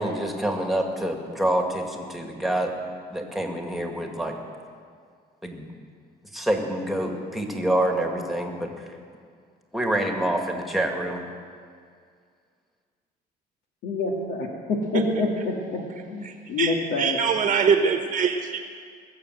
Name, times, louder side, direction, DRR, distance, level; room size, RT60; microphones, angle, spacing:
voice 1, 0.0-2.7 3.1-4.3 5.4-5.7 6.3-8.7 9.7-11.2, right 1 dB, ahead, 2 dB, 2.0 m, -26 dB
voice 2, 13.8-15.8 16.1-17.2, left 3 dB, 80° left, 1 dB, 2.0 m, -27 dB
voice 3, 14.9-15.5 16.2-18.6, right 6 dB, 45° right, 6 dB, 1.2 m, -24 dB
21.0 x 7.1 x 7.8 m, 2.1 s
cardioid pair, 110°, 17 cm